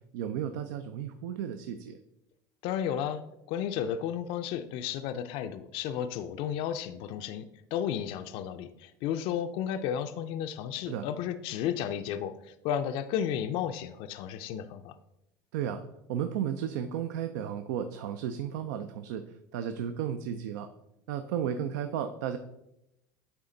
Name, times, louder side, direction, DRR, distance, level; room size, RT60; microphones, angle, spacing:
voice 1, 0.1-2.0 10.9-11.0 15.5-15.8 16.1-19.2 19.5-20.7 21.1-22.4, right 9 dB, 90° right, 9 dB, 0.4 m, -33 dB
voice 2, 2.6-7.4 7.7-14.9, left 9 dB, 65° left, 10 dB, 0.4 m, -33 dB
9.1 x 3.5 x 3.8 m, 0.86 s
supercardioid pair, 120°, 10 cm